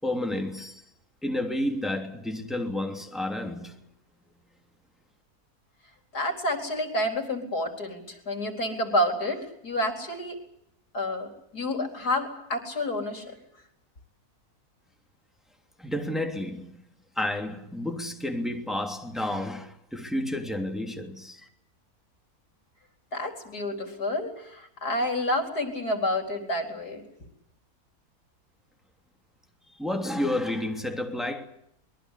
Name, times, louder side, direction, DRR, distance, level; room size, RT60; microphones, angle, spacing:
voice 1, 0.0-0.8 1.2-3.8 15.8-16.8 17.1-21.5 29.7-31.4, left 1 dB, ahead, 3.0 m, -31 dB
voice 2, 6.1-10.4 10.9-11.3 11.5-13.3 23.1-27.0, left 1 dB, 90° left, 4.8 m, -29 dB
24.5 x 22.0 x 8.4 m
omnidirectional pair, 1.6 m